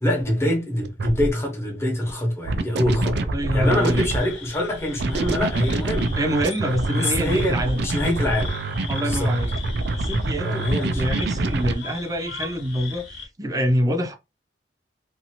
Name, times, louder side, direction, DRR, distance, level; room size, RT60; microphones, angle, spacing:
voice 1, 0.0-6.2 6.9-8.6 9.0-9.3 10.4-11.0, left 1 dB, 15° left, 1.1 m, -24 dB
sound 1, 0.8-1.3 2.5-4.3 5.0-11.7, right 2 dB, 65° right, 0.4 m, -26 dB
voice 2, 3.3-4.1 6.1-7.9 8.9-9.5 9.9-10.7 10.9-14.2, equal, 20° right, 0.6 m, -25 dB
sound 2, 3.6-13.3, left 4 dB, 80° left, 1.2 m, -39 dB
2.8 x 2.5 x 2.8 m
head